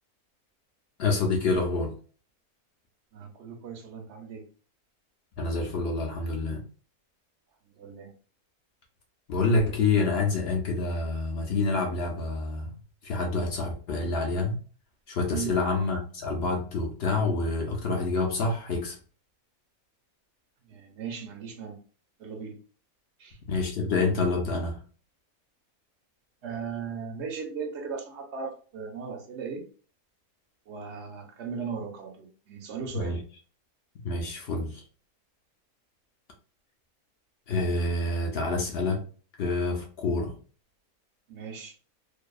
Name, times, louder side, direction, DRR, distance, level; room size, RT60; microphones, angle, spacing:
voice 1, 1.0-1.9 5.4-6.6 9.3-12.7 13.0-14.6 15.1-19.0 23.5-24.8 32.9-33.2 34.0-34.8 37.5-39.0 39.4-40.3, left 3 dB, 60° left, 0.7 m, -27 dB
voice 2, 3.1-4.4 7.7-8.1 15.3-15.6 20.6-21.8 22.2-22.6 23.2-23.4 26.4-29.6 30.7-33.2 41.3-41.8, right 6 dB, 60° right, 0.8 m, -37 dB
2.6 x 2.2 x 2.3 m
omnidirectional pair, 1.5 m